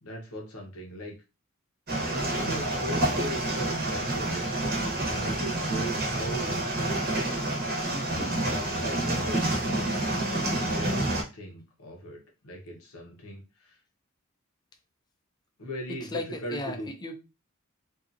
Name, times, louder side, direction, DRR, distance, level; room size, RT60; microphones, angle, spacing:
voice 1, 0.0-1.1 2.1-6.5 7.8-10.1 10.7-13.8 15.6-16.9, equal, 85° left, 0.8 m, -39 dB
sound 1, 1.9-11.2, right 1 dB, 45° right, 0.9 m, -28 dB
voice 2, 16.1-17.2, left 2 dB, 20° left, 0.4 m, -35 dB
2.7 x 2.3 x 2.5 m
head